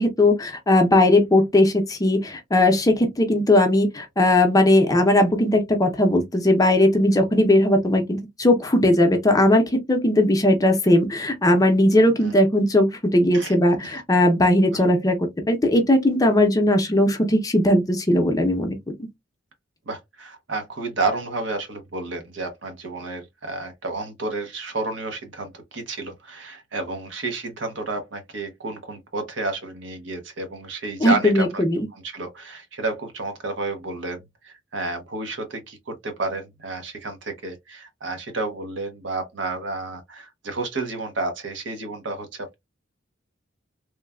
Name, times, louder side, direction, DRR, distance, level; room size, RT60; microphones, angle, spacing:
voice 1, 0.0-15.2 15.5-18.8 31.0-31.9, left 1 dB, 20° left, 0.6 m, -18 dB
voice 2, 19.9-31.6 31.9-42.5, right 3 dB, 70° right, 0.8 m, -31 dB
3.1 x 2.1 x 2.2 m
head